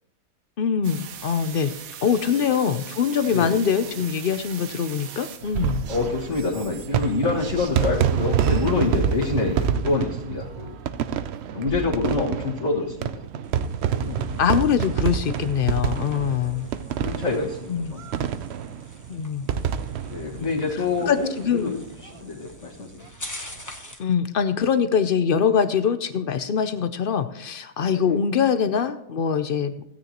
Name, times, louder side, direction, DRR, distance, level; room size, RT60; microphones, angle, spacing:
voice 1, 0.6-1.7 2.0-5.8 14.4-16.7 17.7-17.9 19.1-19.6 20.3-20.5 21.1-21.7 24.0-29.7, left 7 dB, 75° left, 11 dB, 0.5 m, -23 dB
sound 1, 0.8-9.7, right 8 dB, 65° right, 1.2 m, -41 dB
sound 2, 5.4-21.4 21.8-21.9 22.0-22.1 23.4-23.7, right 8 dB, 80° right, 0.5 m, -27 dB
voice 2, 5.9-10.8 11.5-13.1 13.9-14.4 16.1-16.7 17.0-18.1 20.1-21.8 22.0-23.1 27.9-28.1, left 4 dB, 45° left, -7 dB, 2.1 m, -27 dB
sound 3, 13.4-24.1, left 1 dB, 15° left, 1.0 m, -45 dB
16.0 x 9.6 x 3.0 m, 0.80 s
omnidirectional pair, 1.7 m